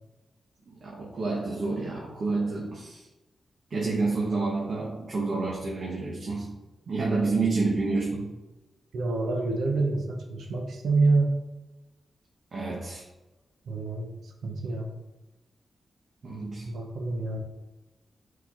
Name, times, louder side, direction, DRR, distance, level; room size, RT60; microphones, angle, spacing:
voice 1, 0.8-3.0 3.7-6.5 6.9-8.3 12.5-13.0 16.2-16.7, right 3 dB, 60° right, -5 dB, 0.9 m, -29 dB
voice 2, 8.9-11.4 13.7-14.9 16.6-17.4, right 3 dB, 85° right, 2 dB, 0.6 m, -27 dB
4.3 x 4.2 x 2.5 m, 1.1 s
cardioid pair, 90°, 0 cm